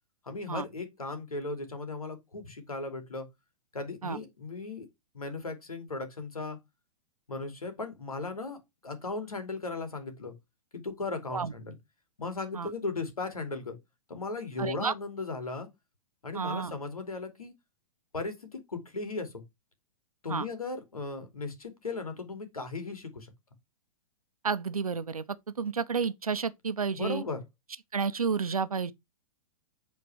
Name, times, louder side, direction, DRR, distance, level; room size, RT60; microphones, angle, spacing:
voice 1, 0.3-3.3 3.7-4.9 5.1-6.6 7.3-10.3 10.7-11.8 12.2-13.8 14.1-15.7 16.2-17.5 18.1-19.4 20.2-23.3 27.0-27.4, left 3 dB, 80° left, 2.7 m, -37 dB
voice 2, 14.6-14.9 16.3-16.7 20.3-20.5 24.4-25.2 25.6-27.2 27.9-28.9, right 5 dB, 80° right, 0.9 m, -31 dB
8.5 x 4.5 x 4.7 m
figure-of-eight pair, 110°, 18 cm